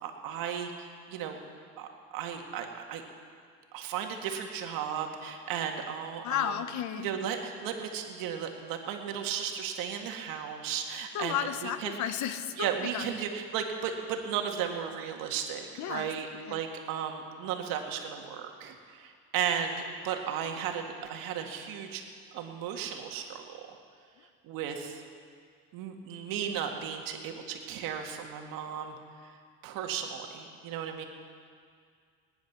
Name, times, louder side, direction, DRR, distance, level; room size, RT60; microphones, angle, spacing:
voice 1, 0.0-1.4 1.8-3.0 3.7-6.6 7.0-12.0 12.6-22.0 22.3-23.8 24.4-25.0 25.7-29.0 29.2-29.4 29.6-31.0, right 8 dB, 65° right, 3 dB, 2.0 m, -35 dB
voice 2, 6.2-7.1 11.1-13.1 15.8-16.1 16.5-16.6, left 10 dB, 50° left, 11 dB, 1.0 m, -33 dB
19.5 x 10.5 x 6.0 m, 2.1 s
supercardioid pair, 105°, 36 cm